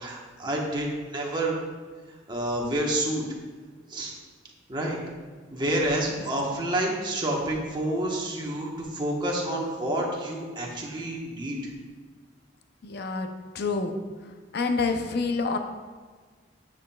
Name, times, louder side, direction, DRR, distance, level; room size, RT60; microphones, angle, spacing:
voice 1, 0.0-1.6 2.3-3.2 3.9-4.1 4.7-5.0 5.5-11.7, right 1 dB, 25° right, -2 dB, 1.2 m, -29 dB
voice 2, 12.8-13.3 13.5-13.9 14.5-15.6, left 4 dB, 60° left, 6 dB, 0.6 m, -27 dB
9.4 x 7.2 x 2.3 m, 1.5 s
head